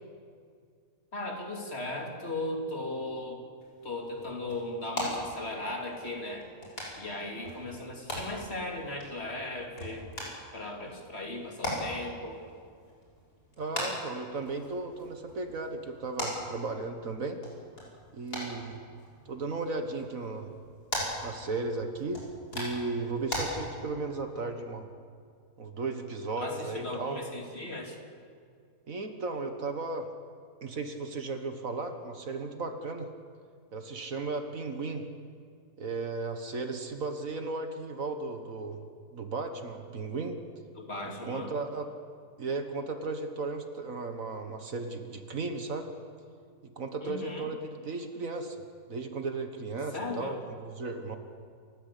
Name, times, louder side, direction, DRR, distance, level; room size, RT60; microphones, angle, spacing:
voice 1, 1.1-3.4 3.8-6.5 7.0-10.1 10.5-12.4 26.4-28.0 40.8-41.5 47.0-47.5 49.9-50.4, left 2 dB, 40° left, 1 dB, 3.1 m, -37 dB
sound 1, 3.6-23.4, left 1 dB, 80° left, 6.4 m, -41 dB
voice 2, 13.6-17.4 18.1-18.8 19.3-20.5 21.2-22.3 22.5-24.9 25.6-27.2 28.9-30.1 30.6-33.1 33.7-35.1 35.8-38.8 39.1-40.4 41.2-41.9 42.4-45.9 46.6-48.6 48.9-51.2, right 3 dB, 60° right, 6 dB, 1.9 m, -35 dB
28.0 x 14.5 x 8.4 m, 2.2 s
omnidirectional pair, 1.7 m